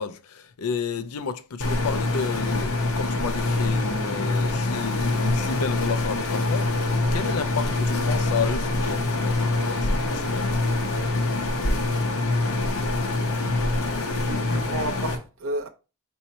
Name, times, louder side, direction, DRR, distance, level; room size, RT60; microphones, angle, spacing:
voice 1, 0.0-10.6, left 5 dB, 80° left, 0.5 m, -31 dB
sound 1, 1.6-15.2, left 2 dB, 65° left, 0.9 m, -25 dB
voice 2, 14.2-15.7, right 2 dB, 60° right, 0.7 m, -31 dB
4.2 x 2.7 x 4.1 m
head